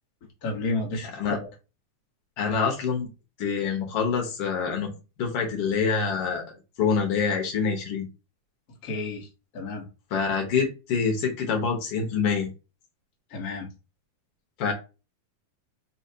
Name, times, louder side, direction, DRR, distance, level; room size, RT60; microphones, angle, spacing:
voice 1, 0.4-1.5 8.8-9.3 9.5-9.8 13.3-13.7, left 3 dB, 85° left, 0 dB, 0.8 m, -31 dB
voice 2, 2.4-3.1 3.4-4.9 5.2-6.4 6.8-8.1 10.1-12.5 14.6-14.7, left 5 dB, 65° left, 1 dB, 1.6 m, -26 dB
4.7 x 3.2 x 2.8 m, 0.30 s
omnidirectional pair, 3.6 m